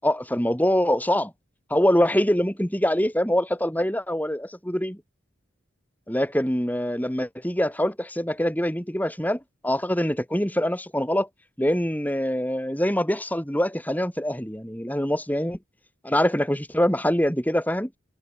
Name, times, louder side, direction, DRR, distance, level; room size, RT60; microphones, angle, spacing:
voice 1, 0.0-1.3 1.7-5.0 6.1-11.3 11.6-15.6 16.1-17.9, equal, 10° left, 6.2 m, -24 dB
head